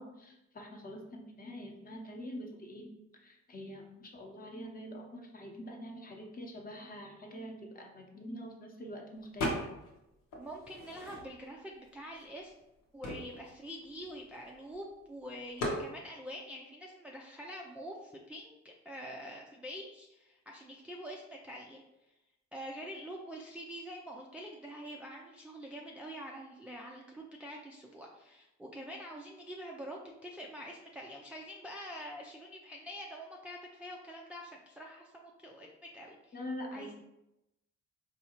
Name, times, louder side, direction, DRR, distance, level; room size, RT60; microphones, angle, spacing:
voice 1, 0.0-2.9 3.2-9.6 36.3-36.9, equal, 30° left, 1 dB, 0.7 m, -45 dB
sound 1, 9.4-10.0 10.3-11.6 12.2-12.3 12.5-14.7 15.6-15.9, left 1 dB, 85° left, 1.0 m, -37 dB
voice 2, 10.4-12.5 12.9-21.8 22.5-36.4 36.7-36.9, equal, 5° right, -2 dB, 0.3 m, -46 dB
4.0 x 2.3 x 2.9 m, 0.91 s
cardioid pair, 90°, 30 cm